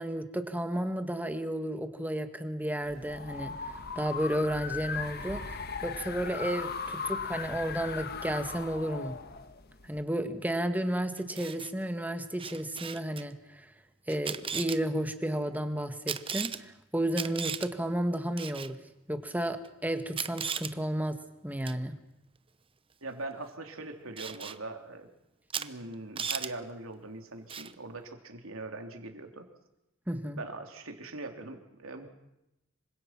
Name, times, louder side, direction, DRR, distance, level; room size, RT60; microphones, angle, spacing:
voice 1, 0.0-9.2 9.8-13.7 14.1-18.8 19.1-21.2 21.4-22.0 30.1-30.4, right 1 dB, 10° right, 8 dB, 1.7 m, -32 dB
sound 1, 2.9-10.0, left 5 dB, 50° left, 1.6 m, -38 dB
Camera, 11.2-11.7 12.4-13.2 14.1-14.8 16.1-16.6 17.1-17.7 18.4-18.7 19.6-19.7 20.1-20.7 21.7-21.8 24.2-24.6 25.5-25.7 25.9-26.5 27.5-27.7, right 7 dB, 25° right, 0.9 m, -36 dB
voice 2, 23.0-25.1 25.5-29.5 30.3-32.1, right 2 dB, 80° right, 4 dB, 3.4 m, -41 dB
26.5 x 25.0 x 6.0 m, 0.89 s
head